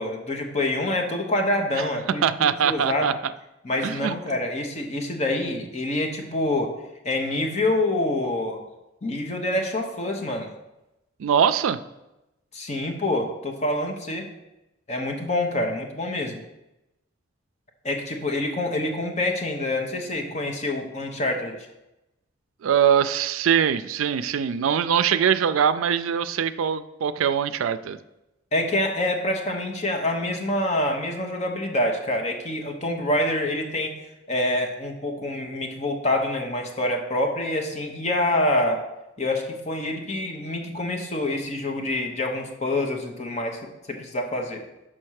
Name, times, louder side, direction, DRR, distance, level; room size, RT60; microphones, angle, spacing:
voice 1, 0.0-2.2 2.6-3.1 3.6-6.7 7.0-8.6 9.0-10.5 12.5-14.3 14.9-16.4 17.8-21.5 28.5-33.9 34.3-38.8 39.2-43.6 43.9-44.6, left 1 dB, 35° left, 2 dB, 1.0 m, -26 dB
voice 2, 2.2-3.1 3.8-4.2 11.2-11.8 22.6-28.0, right 8 dB, 90° right, 12 dB, 0.4 m, -22 dB
6.2 x 4.4 x 6.4 m, 0.95 s
head